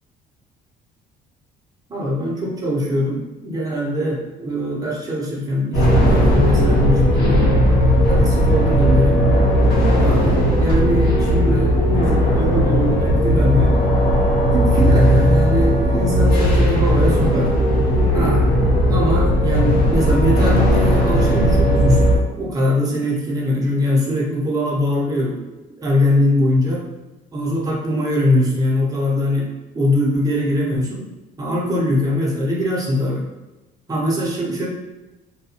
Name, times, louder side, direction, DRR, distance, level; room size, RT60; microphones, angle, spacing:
voice 1, 1.9-7.5 8.1-9.2 10.0-13.8 14.5-17.5 18.1-18.4 18.9-25.4 25.8-26.8 27.3-29.5 29.7-31.1 31.4-33.3 33.9-34.7, left 1 dB, 20° right, -4 dB, 0.8 m, -22 dB
sound 1, 5.7-22.2, equal, 75° left, 1.2 m, -16 dB
2.4 x 2.2 x 2.8 m, 1.1 s
cardioid pair, 110°, 17 cm